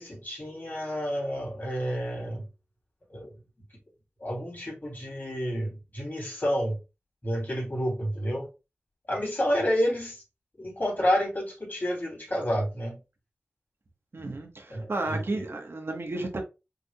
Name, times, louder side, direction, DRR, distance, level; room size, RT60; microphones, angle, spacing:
voice 1, 0.0-2.5 3.1-3.3 4.2-6.8 7.2-8.5 9.1-10.2 10.6-13.0 14.7-15.4, equal, 45° left, 3.0 m, -29 dB
voice 2, 14.1-16.4, right 2 dB, 65° right, 1.3 m, -33 dB
5.8 x 3.7 x 2.4 m
cardioid pair, 45°, 4 cm